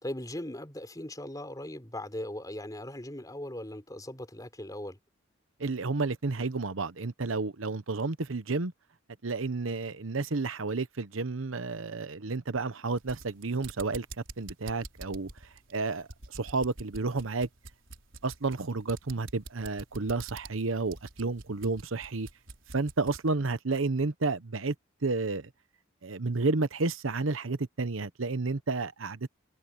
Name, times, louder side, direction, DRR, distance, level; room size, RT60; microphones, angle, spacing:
voice 1, 0.0-5.0, left 1 dB, 20° left, 4.0 m, -39 dB
voice 2, 5.6-8.7 9.2-14.1 14.4-15.3 15.7-17.5 18.2-22.3 22.7-24.7 25.0-25.5 26.0-29.3, right 3 dB, 90° right, 1.0 m, -31 dB
sound 1, 12.9-23.3, right 3 dB, 75° right, 4.3 m, -47 dB
head